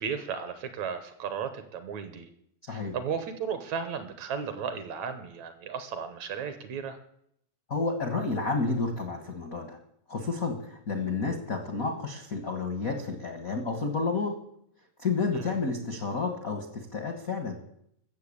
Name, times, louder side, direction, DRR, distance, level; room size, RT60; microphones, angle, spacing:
voice 1, 0.0-2.3 2.7-7.0 15.3-15.5, right 6 dB, 70° right, 10 dB, 2.0 m, -35 dB
voice 2, 7.7-9.8 10.1-14.4 15.0-17.6, left 4 dB, 65° left, 5 dB, 0.8 m, -30 dB
13.5 x 7.3 x 8.5 m, 0.73 s
omnidirectional pair, 3.9 m